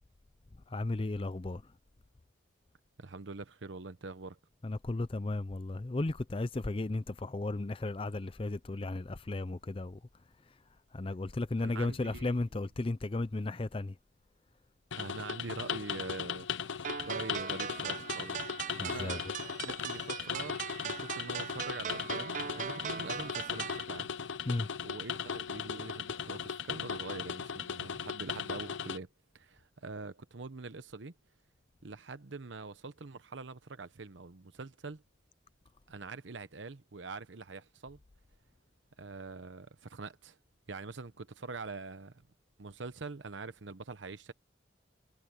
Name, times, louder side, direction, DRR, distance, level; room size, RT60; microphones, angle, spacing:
voice 1, 0.7-1.6 4.6-10.0 10.9-13.9 18.8-19.2 24.5-24.7, left 2 dB, 30° left, 0.5 m, -34 dB
voice 2, 3.0-4.4 11.6-12.4 14.9-16.7 17.1-18.4 18.8-19.3 19.6-24.1 24.8-29.1 29.3-31.1 31.8-35.0 35.9-38.0 39.0-40.4 40.7-42.2 42.6-44.3, right 3 dB, 75° right, 0.9 m, -44 dB
sound 1, 14.9-29.0, left 7 dB, 85° left, 0.7 m, -38 dB
sound 2, 16.8-23.8, right 8 dB, 40° right, 0.4 m, -40 dB
head